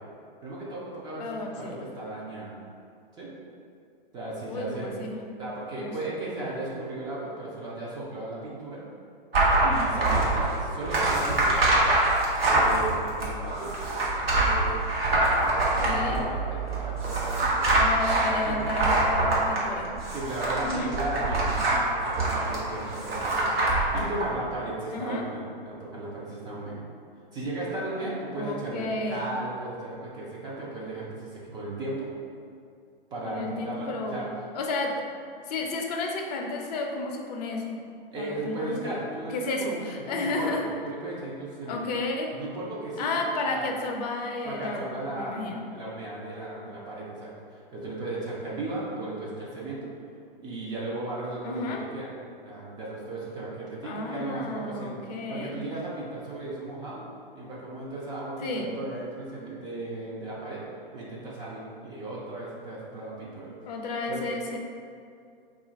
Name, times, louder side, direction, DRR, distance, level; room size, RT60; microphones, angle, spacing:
voice 1, 0.4-2.6 3.2-3.3 4.1-4.9 5.4-8.8 9.6-11.9 12.5-13.8 14.2-14.9 15.4-17.9 18.3-18.7 20.1-26.8 27.3-32.1 33.1-34.3 38.1-39.8 40.1-41.8 42.3-43.1 43.4-43.7 44.4-47.3 47.7-49.9 50.4-52.1 52.4-55.0 55.3-57.0 57.3-60.7 60.9-63.5 64.1-64.3, right 2 dB, 15° right, -6 dB, 0.4 m, -36 dB
voice 2, 1.2-1.8 4.5-5.2 5.8-6.0 15.8-16.2 17.7-19.9 20.6-20.9 24.9-25.2 28.4-29.3 33.2-34.2 34.5-35.0 35.5-37.8 38.2-40.6 41.7-42.3 43.0-45.6 51.4-51.8 53.8-55.6 58.4-58.7 63.7-64.6, left 2 dB, 45° left, 1 dB, 0.5 m, -32 dB
sound 1, 9.3-24.3, right 2 dB, 85° right, 1.0 m, -25 dB
2.7 x 2.4 x 3.9 m, 2.4 s
hypercardioid pair, 125°, 29 cm